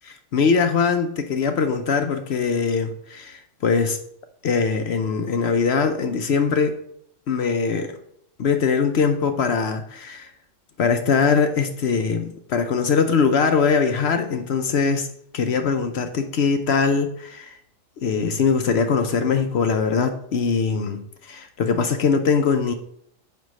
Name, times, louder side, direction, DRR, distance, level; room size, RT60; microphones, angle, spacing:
voice 1, 0.3-4.0 4.4-6.8 7.3-8.0 8.4-10.3 10.8-15.1 15.3-17.6 18.0-22.7, left 5 dB, 60° left, 7 dB, 0.9 m, -21 dB
8.8 x 3.0 x 6.3 m, 0.68 s
omnidirectional pair, 1.3 m